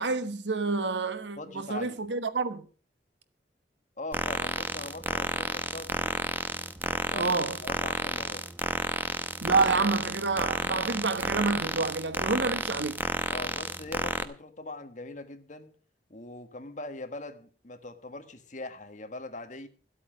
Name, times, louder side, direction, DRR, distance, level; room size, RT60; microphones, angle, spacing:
voice 1, 0.0-2.6 7.1-7.6 9.4-13.0, right 3 dB, 85° right, 1.3 m, -28 dB
voice 2, 1.4-2.0 4.0-6.2 6.9-8.5 13.3-15.7 16.1-19.7, left 2 dB, 45° left, 1.5 m, -41 dB
sound 1, 4.1-14.2, right 1 dB, 10° right, 0.8 m, -31 dB
13.5 x 8.5 x 6.2 m
head